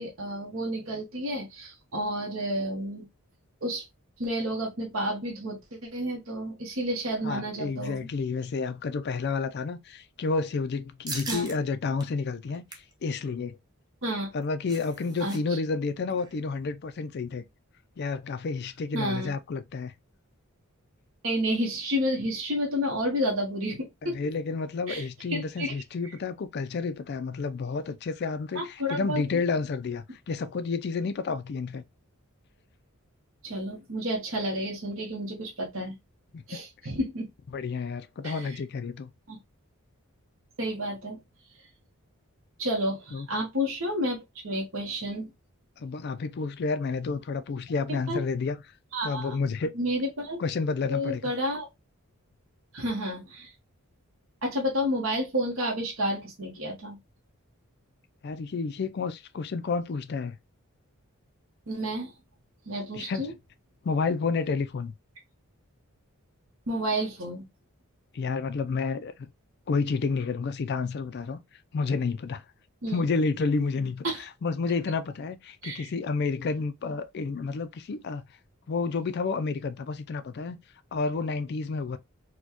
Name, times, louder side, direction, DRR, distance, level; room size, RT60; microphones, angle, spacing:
voice 1, 0.0-3.1 3.6-3.9 4.2-8.0 11.3-11.5 14.0-14.3 15.2-15.6 18.9-19.3 21.2-24.2 24.9-25.0 25.3-25.7 28.5-29.2 33.4-35.9 36.5-37.3 38.2-38.6 39.3-39.4 40.6-41.2 42.6-45.3 48.1-48.2 48.9-49.4 49.7-50.4 50.8-51.7 52.7-53.5 54.4-57.0 61.7-62.1 62.7-63.3 66.7-67.4 72.8-73.0 74.0-74.2 75.6-75.9, equal, 60° right, 1.0 m, -30 dB
voice 2, 7.2-13.6 14.3-17.4 18.0-19.9 24.0-31.8 36.3-36.6 37.5-39.1 43.1-43.3 45.8-48.6 49.0-49.8 50.4-51.3 58.2-60.4 62.9-63.3 63.8-64.9 68.1-69.3 69.7-71.4 71.7-72.4 72.9-78.2 78.7-80.6 80.9-82.0, left 4 dB, 50° left, 0.3 m, -30 dB
sound 1, 11.1-11.6 12.0-12.1 12.5-12.9 14.2-15.4 15.6-15.8 16.1-16.4, right 3 dB, 20° right, 0.6 m, -39 dB
4.2 x 2.2 x 2.8 m
head